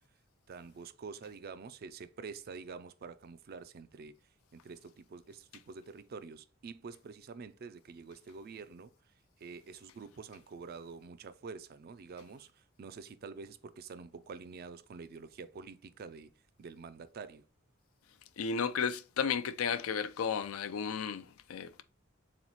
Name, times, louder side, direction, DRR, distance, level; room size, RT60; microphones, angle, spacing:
voice 1, 0.5-4.2 4.5-8.9 9.4-16.3 16.6-17.5, right 5 dB, 45° right, 0.4 m, -47 dB
voice 2, 18.4-21.8, left 6 dB, 85° left, 0.4 m, -33 dB
3.9 x 3.0 x 4.0 m
head